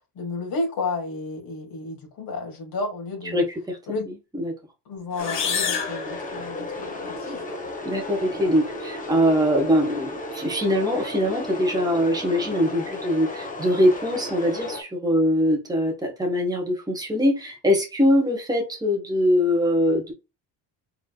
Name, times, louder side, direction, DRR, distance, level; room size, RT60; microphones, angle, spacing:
voice 1, 0.2-3.5 3.9-4.1 4.9-7.6, left 3 dB, 60° left, 2.5 m, -32 dB
voice 2, 3.3-4.5 7.8-20.1, equal, 10° right, 1.6 m, -22 dB
sound 1, 5.1-7.0, left 7 dB, 80° left, 1.7 m, -29 dB
sound 2, 5.2-14.8, left 2 dB, 20° left, 1.1 m, -34 dB
4.7 x 3.8 x 2.3 m
cardioid pair, 150°, 41 cm